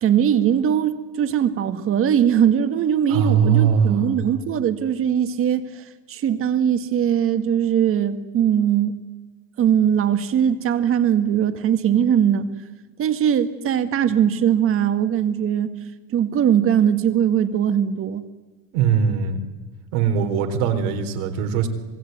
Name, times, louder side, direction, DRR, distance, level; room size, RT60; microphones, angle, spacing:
voice 1, 0.0-8.9 9.6-12.5 13.0-15.7 16.1-18.2, right 9 dB, 35° right, 10 dB, 1.9 m, -20 dB
voice 2, 3.1-4.2 18.7-19.4 19.9-21.7, right 7 dB, 75° right, 6 dB, 4.1 m, -20 dB
27.0 x 20.0 x 9.4 m, 1.3 s
cardioid pair, 145°, 38 cm